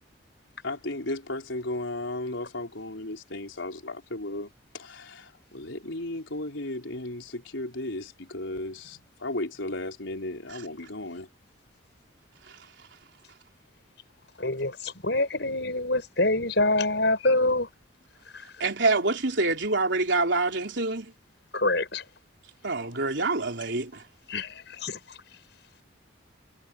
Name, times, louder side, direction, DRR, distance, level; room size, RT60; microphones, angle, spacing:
voice 1, 0.6-4.5 4.8-5.3 5.5-11.3, left 1 dB, 80° left, 4.1 m, -35 dB
voice 2, 14.4-17.7 21.5-22.0 24.3-25.0, left 2 dB, 60° left, 6.2 m, -25 dB
voice 3, 18.6-21.1 22.6-24.0, right 3 dB, 65° right, 3.8 m, -26 dB
head